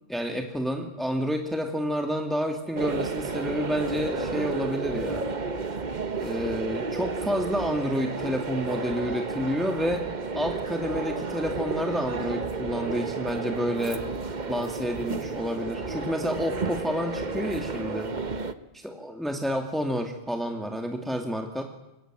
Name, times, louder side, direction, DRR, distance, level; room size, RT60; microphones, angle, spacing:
voice 1, 0.1-5.3 6.2-10.1 10.3-14.0 14.5-18.1 18.7-21.6, equal, ahead, 3 dB, 2.3 m, -29 dB
sound 1, 2.7-18.5, right 4 dB, 45° right, 1.3 m, -32 dB
26.0 x 23.5 x 9.2 m, 0.96 s
omnidirectional pair, 1.1 m